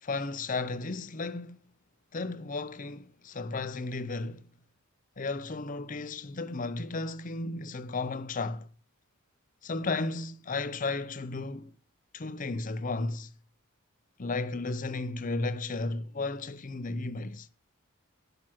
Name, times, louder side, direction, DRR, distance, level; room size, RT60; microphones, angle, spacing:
voice 1, 0.0-1.6 2.1-4.5 5.2-8.7 9.6-11.7 12.1-13.3 14.2-17.5, left 3 dB, 40° left, 0.6 m, -34 dB
10.5 x 6.0 x 6.1 m
head